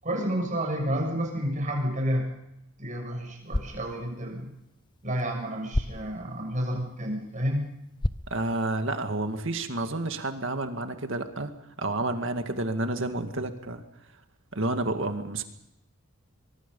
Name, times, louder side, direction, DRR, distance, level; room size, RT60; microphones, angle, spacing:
voice 1, 0.0-2.3 2.8-4.5 5.0-7.6, equal, 35° right, 1 dB, 7.1 m, -30 dB
sound 1, 3.3-9.3, left 1 dB, 20° left, 0.7 m, -36 dB
voice 2, 8.3-11.5 11.8-13.8 14.5-15.4, right 2 dB, 60° right, 6 dB, 2.0 m, -30 dB
23.5 x 23.0 x 5.5 m, 0.83 s
head